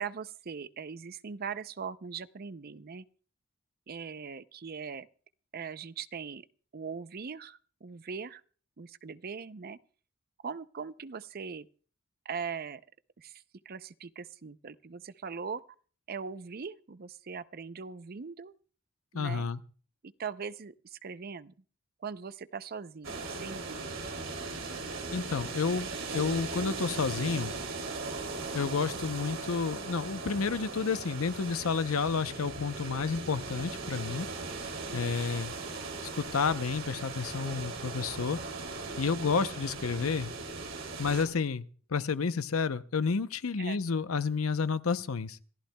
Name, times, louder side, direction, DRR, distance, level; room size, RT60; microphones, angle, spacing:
voice 1, 0.0-3.0 3.9-5.1 5.5-6.5 6.7-8.4 8.8-9.8 10.4-11.7 12.2-12.8 13.2-15.6 16.1-18.5 19.1-19.5 20.0-21.5 22.0-23.8 34.8-35.2 35.7-36.0 39.2-39.3 43.6-43.8, right 6 dB, 45° right, 0.5 m, -40 dB
voice 2, 19.1-19.6 25.1-27.5 28.5-34.3 34.9-35.5 36.1-38.4 39.0-40.3 41.0-45.4, left 5 dB, 85° left, 0.7 m, -30 dB
sound 1, 23.0-41.3, right 3 dB, 65° right, 2.9 m, -38 dB
27.0 x 14.5 x 2.3 m
head